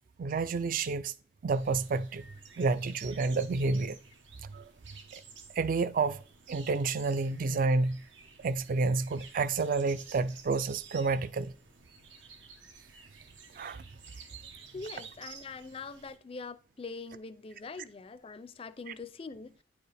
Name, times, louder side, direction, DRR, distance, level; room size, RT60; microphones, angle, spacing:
voice 1, 0.2-1.1 1.4-2.2 2.6-4.0 4.5-4.7 5.1-5.2 5.6-6.2 6.5-8.0 8.4-11.5 13.6-13.8, right 3 dB, 45° right, 0.4 m, -29 dB
sound 1, 1.5-16.2, right 5 dB, 75° right, 1.0 m, -52 dB
voice 2, 14.7-19.6, left 4 dB, 30° left, 0.4 m, -43 dB
9.5 x 4.7 x 3.3 m
head